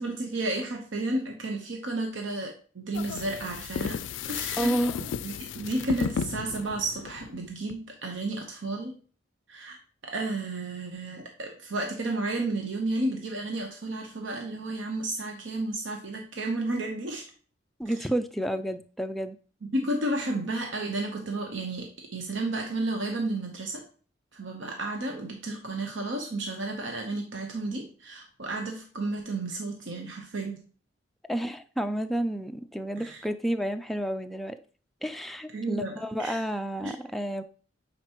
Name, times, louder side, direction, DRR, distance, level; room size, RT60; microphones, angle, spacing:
voice 1, 0.0-9.0 9.5-9.8 10.0-17.2 19.7-23.8 24.3-30.6 33.0-33.2 35.5-36.4 36.8-37.0, right 2 dB, 85° right, 0.9 m, -32 dB
sound 1, 2.9-7.8, left 7 dB, 85° left, 0.3 m, -34 dB
voice 2, 4.6-5.1 17.8-19.4 31.3-34.6 35.0-37.4, right 1 dB, ahead, 0.3 m, -30 dB
8.8 x 4.3 x 2.9 m
head